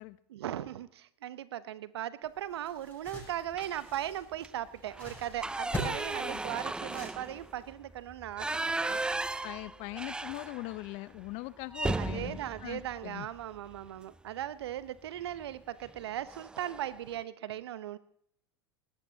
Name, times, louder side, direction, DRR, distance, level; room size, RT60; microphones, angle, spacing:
voice 1, 0.3-9.0 11.9-18.0, right 12 dB, 75° right, 16 dB, 0.8 m, -38 dB
sound 1, 2.2-7.7, equal, 10° left, 7.7 m, -43 dB
sound 2, 3.5-4.0 4.3-4.5 4.9-10.9 11.2-11.3 11.7-13.9 15.2-15.5 15.8-16.0 16.3-16.9, right 2 dB, 5° right, 0.4 m, -36 dB
voice 2, 9.4-13.3, left 21 dB, 50° left, 18 dB, 0.7 m, -41 dB
20.0 x 17.0 x 2.8 m, 0.69 s
hypercardioid pair, 90°, 14 cm